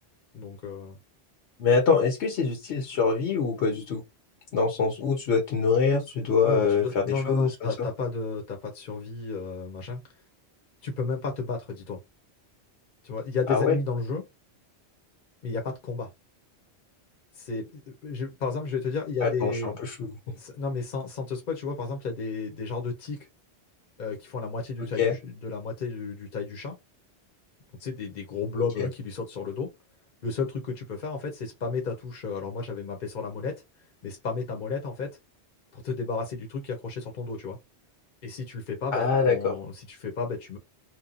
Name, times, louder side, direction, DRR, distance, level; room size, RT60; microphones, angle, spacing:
voice 1, 0.3-1.0 6.5-10.0 10.8-12.0 13.0-14.2 15.4-16.1 17.4-19.8 20.3-23.2 24.0-26.7 27.8-29.7 30.2-33.6 34.0-35.1 35.7-37.6 38.2-40.6, left 4 dB, 50° left, 0.9 m, -32 dB
voice 2, 1.6-4.0 4.5-7.7 13.5-13.8 19.2-20.1 24.8-25.1 28.8-28.9 38.9-39.5, left 5 dB, 70° left, 1.0 m, -24 dB
2.9 x 2.2 x 2.5 m
omnidirectional pair, 1.2 m